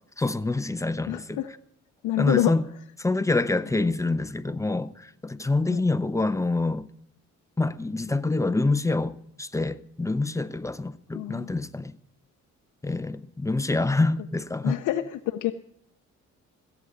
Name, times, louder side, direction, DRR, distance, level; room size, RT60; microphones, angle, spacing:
voice 1, 0.2-1.4 2.2-2.6 3.0-6.9 7.6-12.0 12.8-14.8, left 2 dB, 10° left, 0.6 m, -26 dB
voice 2, 1.1-1.5 2.0-2.5 5.7-5.9 11.1-11.5 14.6-15.5, left 14 dB, 80° left, 0.7 m, -27 dB
16.0 x 8.3 x 5.2 m
cardioid pair, 90°, 30 cm